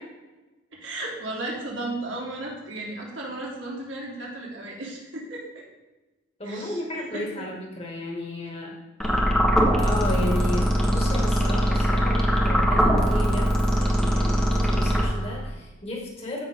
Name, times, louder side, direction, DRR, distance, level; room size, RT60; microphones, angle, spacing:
voice 1, 0.7-5.6 6.4-7.5 9.0-9.2, right 2 dB, 75° right, -3 dB, 3.3 m, -35 dB
voice 2, 6.4-8.7 9.8-13.5 13.8-16.5, left 1 dB, 30° left, -1 dB, 2.5 m, -33 dB
sound 1, 9.0-15.5, equal, 5° left, 1.4 m, -22 dB
15.5 x 6.2 x 3.9 m, 1.1 s
head